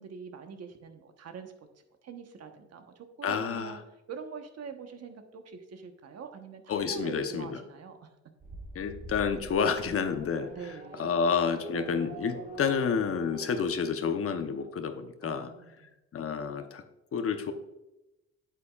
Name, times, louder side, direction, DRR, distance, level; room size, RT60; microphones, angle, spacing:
voice 1, 0.0-3.8 4.1-6.6 6.9-8.1 10.5-11.1 15.2-15.9, right 5 dB, 55° right, 6 dB, 1.2 m, -44 dB
voice 2, 3.2-3.7 6.7-7.6 8.7-10.5 11.0-15.5 16.1-16.8 17.1-17.5, left 6 dB, 50° left, 8 dB, 0.9 m, -29 dB
Race car auto racing / Accelerating revving vroom, 8.4-13.7, right 3 dB, 30° right, 1.6 m, -44 dB
8.3 x 8.1 x 2.4 m, 0.97 s
cardioid pair, 90°, 30 cm